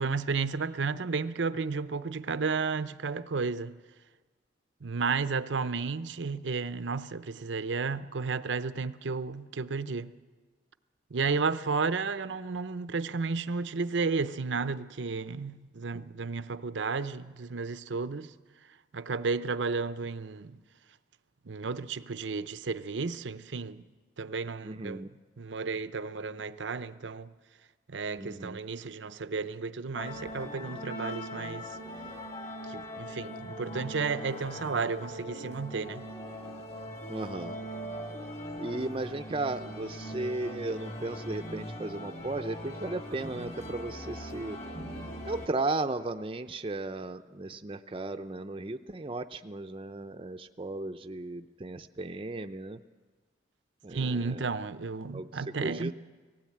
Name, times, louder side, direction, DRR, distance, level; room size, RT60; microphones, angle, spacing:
voice 1, 0.0-3.8 4.8-10.1 11.1-18.3 18.9-20.6 21.5-23.9 24.2-25.1 25.4-27.3 27.9-31.7 32.7-36.0 53.9-55.9, right 4 dB, 85° right, 0.7 m, -32 dB
voice 2, 24.6-25.1 28.2-28.6 37.1-37.6 38.6-44.6 45.3-52.8 53.8-54.4 55.1-55.9, right 2 dB, 30° right, 0.5 m, -35 dB
sound 1, 29.9-45.5, equal, 35° left, 1.8 m, -41 dB
18.5 x 16.5 x 8.6 m
head